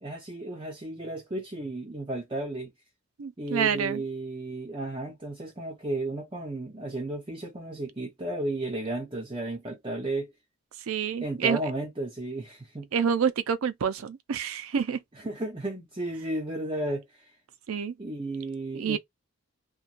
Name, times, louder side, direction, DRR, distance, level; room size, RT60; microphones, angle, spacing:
voice 1, 0.0-2.7 3.4-10.3 11.2-12.9 15.1-17.3 18.0-19.0, right 1 dB, 25° right, 0.5 m, -33 dB
voice 2, 3.2-4.0 10.9-11.6 12.9-15.0 17.7-17.9 18.7-19.0, right 7 dB, 85° right, 0.4 m, -27 dB
2.9 x 2.2 x 2.4 m
head